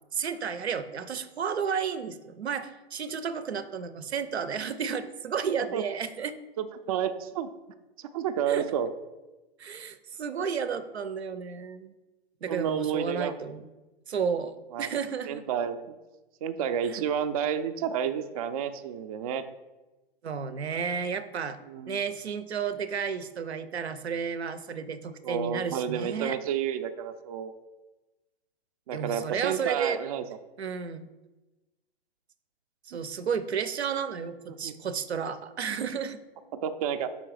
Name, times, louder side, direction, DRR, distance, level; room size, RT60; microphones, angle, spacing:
voice 1, 0.1-6.4 8.5-8.6 9.6-11.9 12.4-13.6 14.1-15.4 16.8-17.0 20.2-21.6 21.9-26.4 28.9-30.0 30.6-31.1 32.9-36.2, right 6 dB, 85° right, 13 dB, 0.6 m, -32 dB
voice 2, 6.6-7.5 8.0-8.9 12.5-13.3 14.7-14.9 15.2-15.8 16.4-19.4 21.6-22.0 25.2-27.5 28.9-30.2 32.9-33.0 34.5-34.7 36.5-37.1, right 8 dB, 35° right, 9 dB, 0.4 m, -30 dB
5.5 x 3.9 x 4.7 m, 1.1 s
hypercardioid pair, 125°, 32 cm